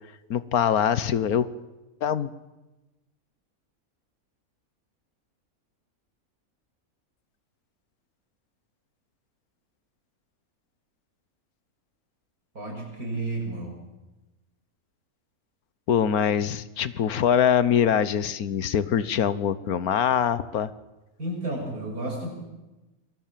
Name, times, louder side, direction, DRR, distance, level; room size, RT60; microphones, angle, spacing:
voice 1, 0.3-1.5 2.0-2.3 15.9-20.7, left 8 dB, 85° left, 16 dB, 1.5 m, -23 dB
voice 2, 12.5-13.7 21.2-22.3, right 2 dB, 85° right, 1 dB, 7.4 m, -32 dB
28.0 x 22.0 x 7.6 m, 1.1 s
omnidirectional pair, 1.5 m